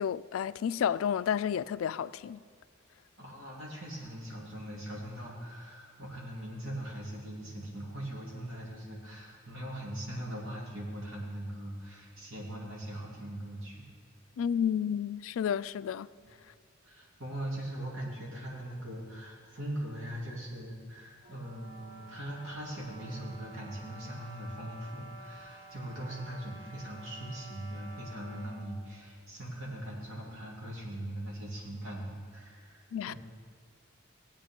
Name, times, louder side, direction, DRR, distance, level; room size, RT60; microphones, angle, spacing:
voice 1, 0.0-2.4 14.4-16.1 32.9-33.1, left 8 dB, 80° left, 0.3 m, -31 dB
voice 2, 3.2-13.8 16.2-16.3 16.8-33.2, right 1 dB, 80° right, 2.7 m, -41 dB
sound 1, 21.2-28.7, right 2 dB, 20° right, 1.3 m, -50 dB
17.5 x 8.7 x 3.7 m
head